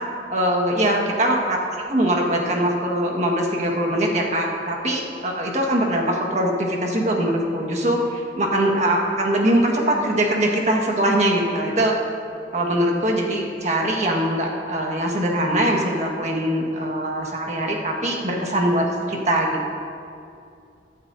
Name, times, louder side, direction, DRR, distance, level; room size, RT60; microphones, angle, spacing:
voice 1, 0.3-1.6 1.9-11.9 12.5-19.7, right 1 dB, 40° right, 0 dB, 1.6 m, -22 dB
18.0 x 11.5 x 2.7 m, 2.5 s
head